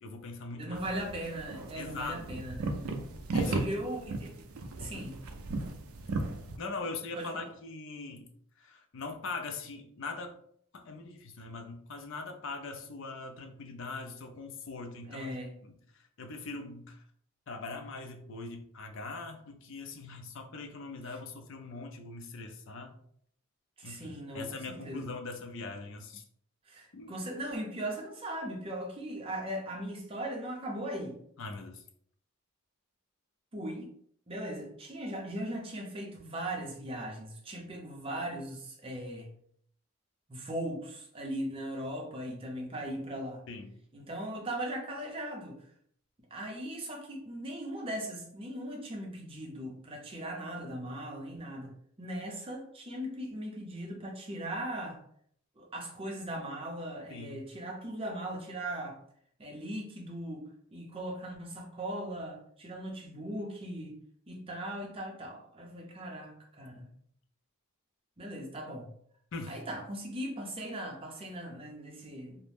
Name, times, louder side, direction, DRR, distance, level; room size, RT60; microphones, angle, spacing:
voice 1, 0.0-0.8 1.7-2.4 3.3-3.7 4.8-5.1 6.6-8.3 8.6-10.4 10.7-15.3 15.6-15.7 16.2-17.0 17.5-23.0 23.8-26.2 26.9-27.2 31.4-31.8 43.5-43.7 57.1-57.4 69.3-69.6, left 3 dB, 60° left, 4 dB, 0.5 m, -41 dB
voice 2, 0.5-2.8 3.4-4.3 4.8-5.2 7.2-7.5 15.1-15.5 21.1-21.2 23.8-25.0 26.7-31.2 33.5-33.9 34.3-39.3 40.3-43.4 43.9-45.7 46.3-51.7 52.0-55.0 55.6-59.0 59.4-64.0 64.3-66.9 68.2-68.9 69.5-72.4, right 1 dB, 25° right, 0 dB, 0.6 m, -39 dB
sound 1, 0.7-6.6, right 2 dB, 75° right, 0.4 m, -36 dB
2.7 x 2.0 x 3.3 m, 0.65 s
head